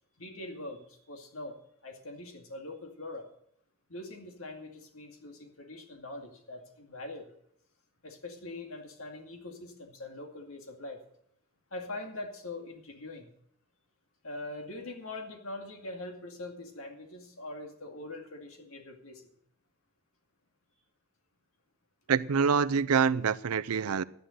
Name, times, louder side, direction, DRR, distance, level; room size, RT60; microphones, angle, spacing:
voice 1, 0.2-3.3 3.9-7.3 8.0-11.0 11.7-13.3 14.2-19.2, left 2 dB, 75° left, 2.3 m, -43 dB
voice 2, 22.1-24.0, right 6 dB, 85° right, 0.5 m, -26 dB
11.5 x 10.0 x 6.6 m
head